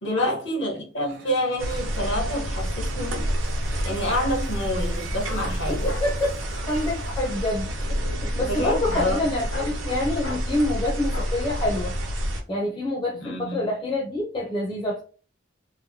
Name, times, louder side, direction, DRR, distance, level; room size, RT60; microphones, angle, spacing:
voice 1, 0.0-3.3 3.8-5.9 8.5-9.2 13.1-13.7, equal, 65° left, 1.1 m, -28 dB
sound 1, 1.0-7.9, right 1 dB, 55° right, 0.7 m, -47 dB
sound 2, 1.6-12.4, equal, 85° right, 0.9 m, -28 dB
sound 3, 3.1-3.2 5.2-5.5 5.9-6.1 6.5-7.0 7.7-7.9 8.7-9.2 9.5-9.8 10.2-10.5 11.1-11.3 11.9-12.0, left 2 dB, 90° left, 0.8 m, -37 dB
voice 2, 5.7-6.4 6.7-11.9 12.5-15.0, left 1 dB, 25° left, 0.6 m, -27 dB
3.1 x 2.1 x 2.7 m
head